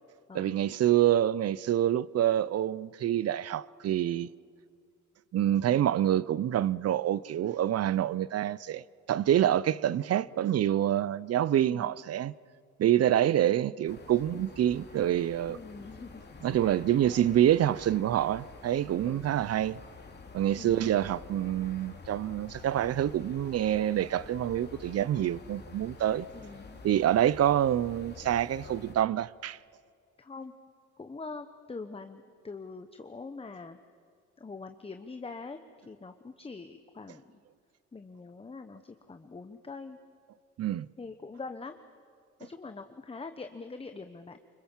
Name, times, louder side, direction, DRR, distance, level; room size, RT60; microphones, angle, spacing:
voice 1, 0.3-4.3 5.3-12.3 12.8-15.6 16.4-19.8 20.3-26.3 26.8-29.6 40.6-40.9, right 11 dB, 55° right, 0.6 m, -27 dB
voice 2, 11.6-11.9 15.5-16.2 16.6-17.4 19.0-19.3 20.6-21.1 26.3-26.8 30.2-30.5 31.0-33.8 34.4-35.6 35.8-37.2 37.9-40.0 41.0-41.8 42.4-44.4, left 4 dB, 20° left, 1.0 m, -44 dB
sound 1, 13.9-29.0, left 4 dB, 35° left, 2.8 m, -49 dB
25.5 x 24.0 x 7.4 m
cardioid pair, 90°, 30 cm